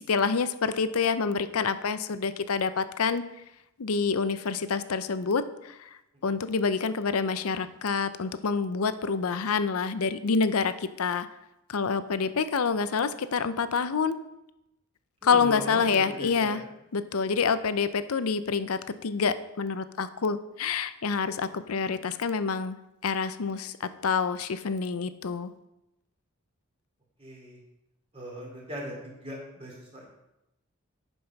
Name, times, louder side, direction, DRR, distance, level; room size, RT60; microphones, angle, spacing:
voice 1, 0.1-3.2 3.8-5.9 6.2-10.7 11.0-11.3 11.7-14.2 15.2-16.6 16.9-22.8 23.0-25.5, left 5 dB, 85° left, 13 dB, 0.6 m, -27 dB
voice 2, 15.2-16.6 27.2-27.6 28.1-30.1, equal, 25° right, -2 dB, 2.8 m, -39 dB
9.6 x 5.5 x 5.8 m, 0.90 s
head